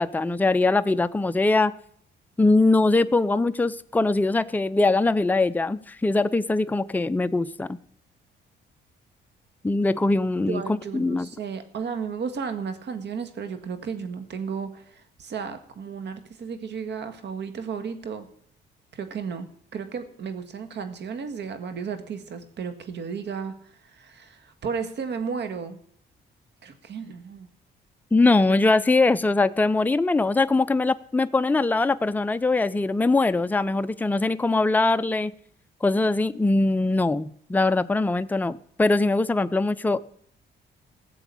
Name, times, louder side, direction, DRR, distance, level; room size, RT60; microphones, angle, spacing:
voice 1, 0.0-1.7 2.4-7.7 9.6-10.6 10.9-11.3 28.1-35.3 35.8-40.0, left 2 dB, 10° left, 11 dB, 0.5 m, -22 dB
voice 2, 10.5-18.3 18.9-25.8 26.6-27.5, right 6 dB, 60° right, 9 dB, 1.7 m, -34 dB
14.5 x 7.1 x 8.4 m, 0.63 s
cardioid pair, 90°, 20 cm